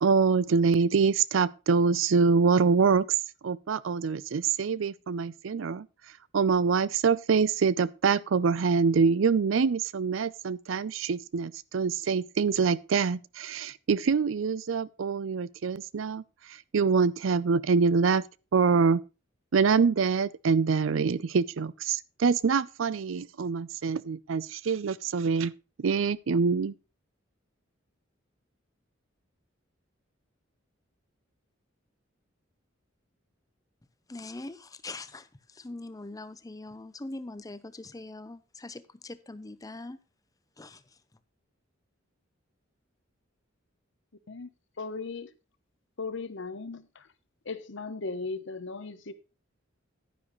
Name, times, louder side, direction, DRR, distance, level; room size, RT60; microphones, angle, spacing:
voice 1, 0.0-3.1 3.4-5.9 6.3-16.2 16.7-18.2 18.5-19.0 19.5-25.5 25.8-26.7, right 5 dB, 75° right, 0.5 m, -25 dB
voice 2, 34.1-40.0 40.6-40.8, left 2 dB, 20° left, 0.6 m, -42 dB
voice 3, 44.8-45.3 46.0-47.1 47.4-49.1, left 3 dB, 65° left, 0.9 m, -37 dB
11.0 x 9.8 x 3.1 m
head